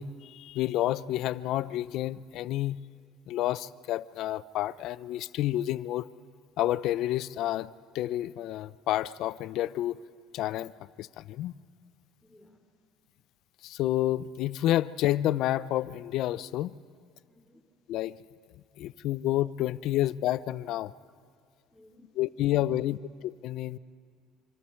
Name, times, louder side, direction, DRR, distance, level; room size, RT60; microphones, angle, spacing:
voice 1, 0.0-2.8 3.3-6.1 6.6-10.0 10.3-10.7 11.0-11.5 13.6-16.8 17.9-18.2 18.8-20.9 22.2-23.0 23.2-23.8, left 14 dB, 60° left, 17 dB, 0.4 m, -29 dB
voice 2, 12.2-12.6 16.9-17.6 21.7-22.1, left 1 dB, 5° left, 2 dB, 3.0 m, -61 dB
25.0 x 25.0 x 4.4 m, 2.2 s
cardioid pair, 140°, 0 cm